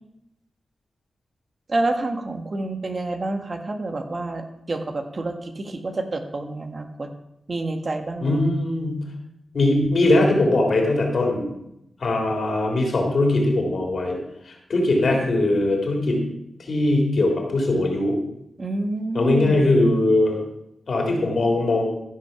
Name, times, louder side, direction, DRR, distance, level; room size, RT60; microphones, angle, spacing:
voice 1, 1.7-7.1 7.5-8.4 18.6-19.7, right 2 dB, 50° right, 6 dB, 1.6 m, -28 dB
voice 2, 8.2-9.0 9.5-11.5 12.0-14.2 14.4-16.2 16.6-18.2 19.1-20.4 20.9-21.9, left 2 dB, 65° left, 0 dB, 3.5 m, -20 dB
14.5 x 5.6 x 5.9 m, 0.82 s
cardioid pair, 50°, 0 cm